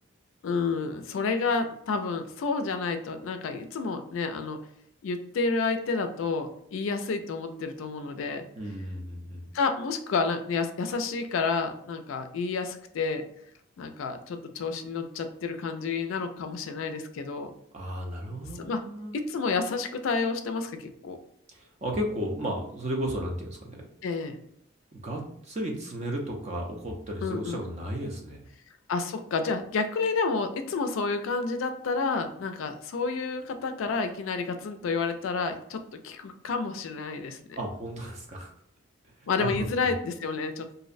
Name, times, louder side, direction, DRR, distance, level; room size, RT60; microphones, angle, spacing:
voice 1, 0.4-4.6 5.0-8.4 9.5-13.2 13.8-17.5 18.6-18.8 19.1-21.2 24.0-24.4 27.2-27.7 28.9-37.6 39.3-40.8, left 4 dB, 75° left, 8 dB, 0.3 m, -30 dB
voice 2, 8.6-9.5 17.7-19.2 21.5-23.9 24.9-28.4 37.6-38.5 39.4-39.9, right 1 dB, 35° right, 0 dB, 0.4 m, -34 dB
2.5 x 2.0 x 2.5 m, 0.71 s
head